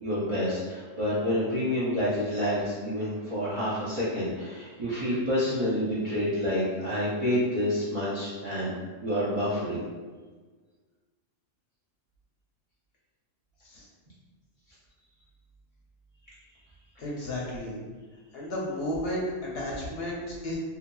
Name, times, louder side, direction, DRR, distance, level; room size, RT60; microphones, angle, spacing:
voice 1, 0.0-8.7 9.0-9.8, equal, 50° right, -10 dB, 0.4 m, -28 dB
voice 2, 17.0-17.8 18.3-20.6, left 1 dB, 65° left, -4 dB, 0.7 m, -33 dB
2.6 x 2.5 x 2.2 m, 1.4 s
omnidirectional pair, 1.3 m